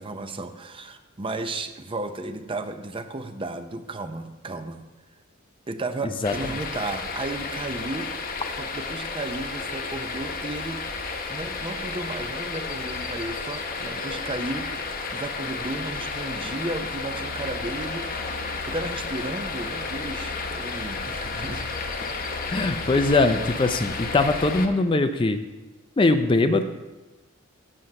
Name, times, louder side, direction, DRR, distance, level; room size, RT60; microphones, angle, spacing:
voice 1, 0.0-4.8 5.7-8.1 8.6-10.8 11.3-21.7, right 2 dB, 25° right, 9 dB, 0.6 m, -34 dB
sound 1, 6.2-24.7, left 4 dB, 45° left, 0.9 m, -32 dB
voice 2, 22.5-25.4 26.0-26.6, left 2 dB, 25° left, 9 dB, 0.4 m, -21 dB
7.6 x 7.2 x 6.5 m, 1.1 s
head